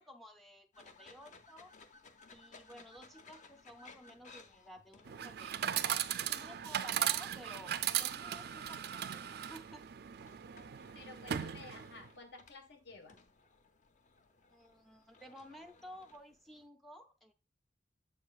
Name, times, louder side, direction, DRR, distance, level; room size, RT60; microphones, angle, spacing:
voice 1, 0.0-1.7 2.3-9.9 14.5-17.3, equal, ahead, 0.5 m, -54 dB
sound 1, 0.7-16.7, left 4 dB, 40° left, 0.7 m, -61 dB
Chatter / Coin (dropping), 5.1-12.1, right 10 dB, 60° right, 0.4 m, -37 dB
voice 2, 10.9-13.2, left 3 dB, 65° left, 1.4 m, -53 dB
7.7 x 6.5 x 2.4 m
head